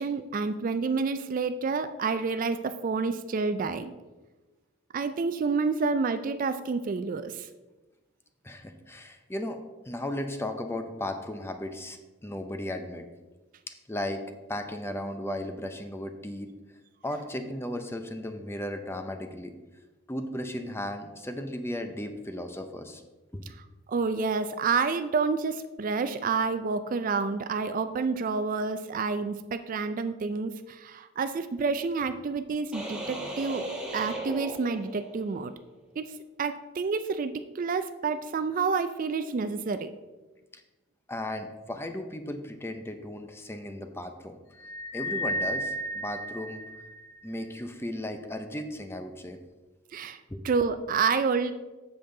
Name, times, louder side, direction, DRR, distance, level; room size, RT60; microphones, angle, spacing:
voice 1, 0.0-3.9 4.9-7.5 23.9-33.6 33.9-35.5 36.0-36.1 36.4-39.9 49.9-50.2 50.4-51.5, right 4 dB, 40° right, 10 dB, 0.3 m, -29 dB
voice 2, 8.4-9.6 9.8-13.1 13.9-14.2 14.5-16.5 17.0-19.5 20.1-23.0 23.3-23.4 40.5-40.6 41.1-44.4 44.9-46.6 47.2-49.4 50.3-50.4, left 1 dB, 10° left, 7 dB, 0.6 m, -35 dB
sound 1, 32.7-35.3, right 1 dB, 5° right, 1.5 m, -36 dB
sound 2, 44.6-47.2, equal, 85° left, 0.8 m, -33 dB
7.4 x 7.0 x 3.8 m, 1.2 s
head